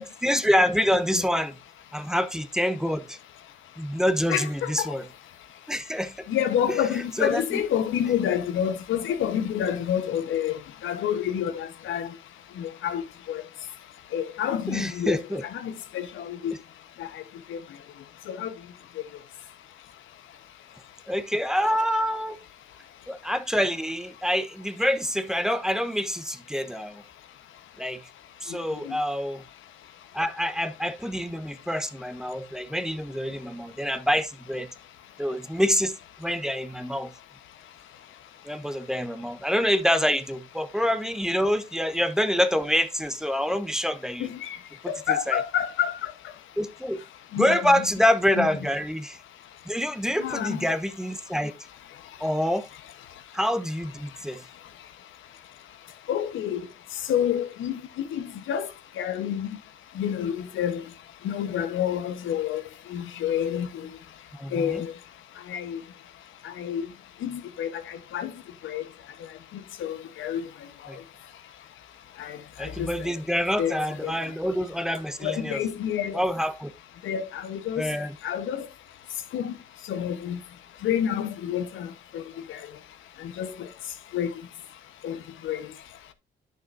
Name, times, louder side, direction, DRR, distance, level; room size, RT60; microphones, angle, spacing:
voice 1, 0.2-1.6 1.9-3.2 3.8-5.0 5.7-6.2 7.2-7.6 14.7-15.4 21.1-22.4 23.1-27.0 27.8-28.0 28.4-29.4 30.1-34.7 35.2-37.1 38.4-44.3 45.1-45.4 46.6-47.0 47.4-49.2 49.7-51.5 52.2-52.7 53.3-54.4 64.3-64.8 70.9-71.0 72.6-75.6 76.1-76.7 77.8-78.1, equal, 5° right, 1.0 m, -26 dB
voice 2, 4.3-4.9 6.3-10.6 10.8-12.1 12.6-13.0 13.3-13.4 14.1-15.2 15.5-16.5 17.0-17.1 17.5-17.6 18.3-18.5 28.8-29.0 44.2-44.5 44.9-46.1 47.3-47.7 48.4-48.6 50.2-50.6 56.1-56.6 57.1-57.8 58.1-58.7 59.0-59.5 60.0-60.8 61.2-62.6 62.9-63.7 64.5-64.9 65.5-65.8 66.4-66.8 67.2-68.3 68.6-68.8 69.8-70.4 72.2-72.9 73.6-73.8 74.0-74.1 75.2-76.2 77.0-77.8 78.2-78.6 79.3-79.5 79.9-80.4 80.8-81.9 82.1-82.2 82.5-82.6 83.4-83.5 84.1-84.3 85.0-85.2 85.4-85.6, left 9 dB, 80° left, 1.2 m, -28 dB
11.0 x 6.5 x 2.6 m
cardioid pair, 90°, 20 cm